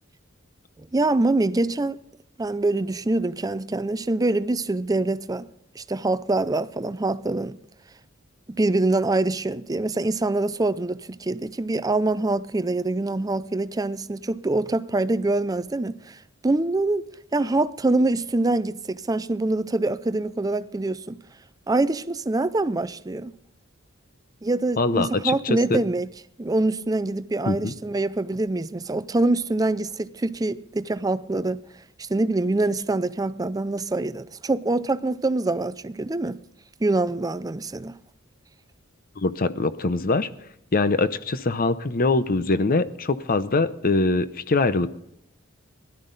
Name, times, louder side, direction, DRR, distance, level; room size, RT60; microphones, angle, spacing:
voice 1, 0.9-2.0 2.4-5.5 5.8-7.5 8.5-16.2 16.4-17.0 17.3-21.2 21.7-23.3 24.4-26.1 26.4-31.6 32.1-36.4 36.8-37.9, right 2 dB, 20° right, 0.5 m, -24 dB
voice 2, 24.8-25.8 27.5-27.7 39.2-40.3 40.7-44.9, left 3 dB, 45° left, 0.7 m, -23 dB
17.0 x 12.0 x 4.0 m
head